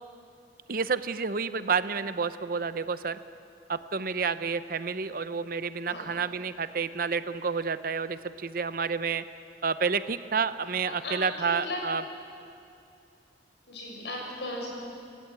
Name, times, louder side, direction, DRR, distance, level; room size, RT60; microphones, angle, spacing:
voice 1, 0.7-3.2 3.7-9.2 9.6-12.0, right 5 dB, 55° right, 12 dB, 0.7 m, -29 dB
voice 2, 10.8-11.9 13.7-14.7, left 1 dB, 80° left, -1 dB, 7.0 m, -36 dB
28.5 x 14.0 x 8.7 m, 2.5 s
head